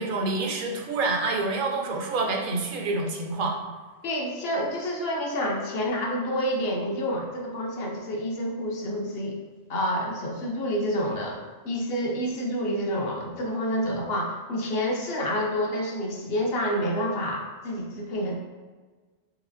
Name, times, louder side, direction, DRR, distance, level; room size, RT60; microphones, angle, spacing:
voice 1, 0.0-3.6, right 3 dB, 55° right, 2 dB, 0.7 m, -27 dB
voice 2, 4.0-9.4 9.7-11.4 11.6-18.3, equal, 60° left, -1 dB, 1.0 m, -28 dB
4.8 x 3.3 x 2.5 m, 1.4 s
omnidirectional pair, 1.2 m